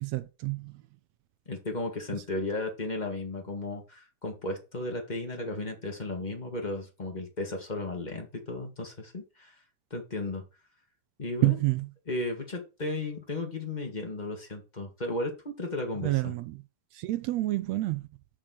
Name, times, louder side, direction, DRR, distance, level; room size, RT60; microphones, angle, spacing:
voice 1, 0.0-0.8 11.4-11.9 16.0-16.6 16.9-18.1, right 19 dB, 75° right, 1.7 m, -28 dB
voice 2, 1.5-9.5 9.9-10.4 11.2-11.6 12.1-16.3, left 2 dB, 20° left, 1.5 m, -34 dB
6.3 x 6.2 x 6.3 m
omnidirectional pair, 3.6 m